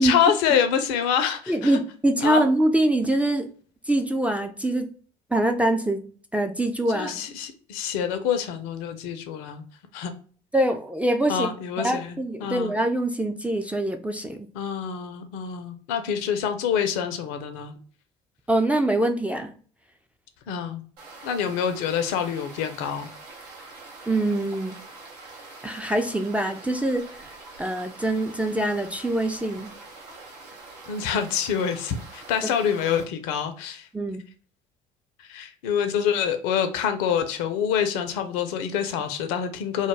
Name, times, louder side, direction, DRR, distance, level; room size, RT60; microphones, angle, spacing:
voice 1, 0.0-1.8 2.2-2.4 6.9-9.7 9.9-10.1 11.3-12.7 14.5-17.8 20.5-20.8 21.2-23.1 30.9-33.9 35.2-39.9, left 8 dB, 65° left, 0.5 m, -26 dB
voice 2, 1.5-3.5 3.9-4.9 5.3-6.0 6.3-7.1 10.5-11.5 11.8-14.5 18.5-19.5 24.1-24.8 25.6-29.7 33.9-34.2, right 1 dB, 5° right, 0.3 m, -24 dB
sound 1, 21.0-33.0, right 3 dB, 80° right, 0.6 m, -44 dB
2.2 x 2.0 x 3.2 m
hypercardioid pair, 60°, 20 cm